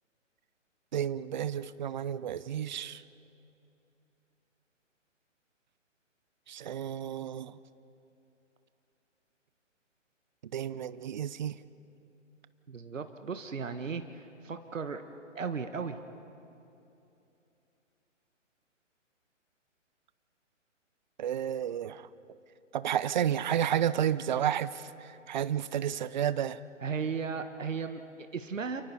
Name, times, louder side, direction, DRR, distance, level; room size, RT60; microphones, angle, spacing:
voice 1, 0.9-3.0 6.5-7.6 10.5-11.5 21.2-22.1 22.7-24.9 25.3-26.6, right 10 dB, 35° right, 16 dB, 0.6 m, -31 dB
voice 2, 12.7-15.0 15.3-16.0 26.8-28.8, right 5 dB, 80° right, 8 dB, 1.5 m, -36 dB
29.0 x 29.0 x 4.2 m, 2.8 s
figure-of-eight pair, 140°, 38 cm